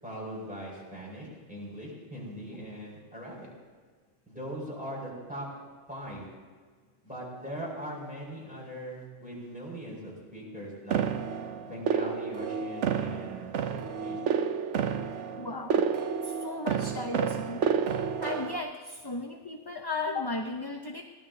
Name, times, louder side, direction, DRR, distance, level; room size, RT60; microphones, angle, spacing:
voice 1, 0.0-3.5 4.3-5.5 5.9-6.3 7.0-11.0 11.6-14.2, equal, 5° right, -4 dB, 6.0 m, -40 dB
sound 1, 10.9-18.6, right 7 dB, 70° right, 1.1 m, -30 dB
voice 2, 15.4-15.8 16.2-17.6 18.2-21.0, left 3 dB, 25° left, 3 dB, 0.7 m, -35 dB
23.0 x 17.5 x 2.8 m, 1.5 s
omnidirectional pair, 1.3 m